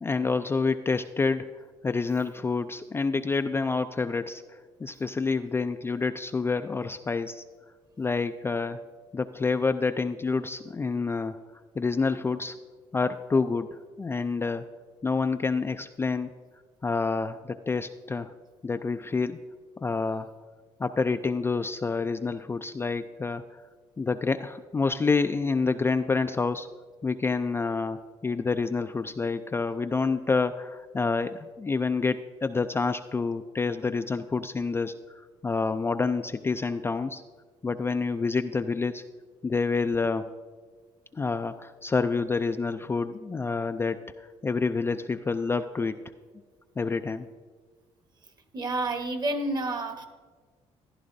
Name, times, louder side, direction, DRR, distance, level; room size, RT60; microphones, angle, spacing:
voice 1, 0.0-7.4 8.0-8.8 9.1-11.4 11.8-12.6 12.9-14.6 15.0-16.3 16.8-18.3 18.6-19.4 19.8-20.3 20.8-23.6 24.0-26.7 27.0-34.9 35.4-37.2 37.6-39.0 39.4-40.3 41.1-46.0 46.8-47.3, left 4 dB, 20° left, 8 dB, 0.3 m, -28 dB
voice 2, 48.5-50.1, right 2 dB, 35° right, 7 dB, 1.1 m, -29 dB
14.5 x 11.0 x 2.6 m, 1.5 s
cardioid pair, 90°, 12 cm